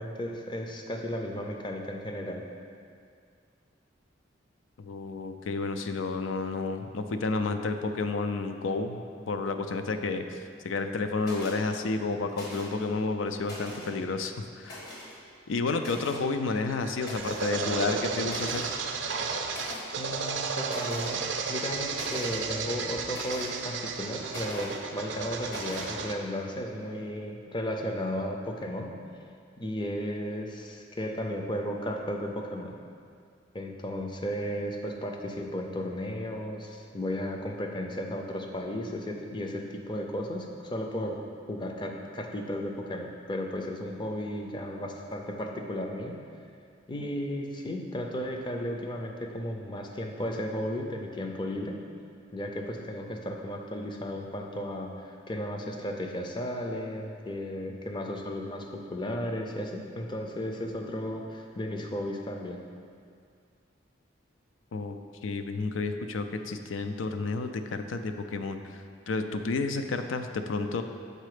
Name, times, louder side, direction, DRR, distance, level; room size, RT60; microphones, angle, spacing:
voice 1, 0.0-2.4 20.0-28.9 29.6-32.7 33.5-41.2 41.5-46.2 46.9-51.8 52.3-62.6, equal, 25° left, 2 dB, 0.5 m, -34 dB
voice 2, 4.8-14.9 15.5-18.6 64.7-65.0 65.2-70.8, left 3 dB, 80° left, 7 dB, 0.4 m, -31 dB
sound 1, 11.2-11.6 12.3-12.8 13.3-13.9 14.6-15.1 15.8-16.2 17.0-17.5 17.9-18.0 18.2-18.7 19.5-19.9 20.6-21.1 21.5-22.4 23.1-23.5 24.3-24.8 25.5-25.9, left 1 dB, 55° left, 1.6 m, -42 dB
sound 2, 16.5-26.1, right 5 dB, 65° right, 0.5 m, -33 dB
6.6 x 4.1 x 4.9 m, 2.3 s
head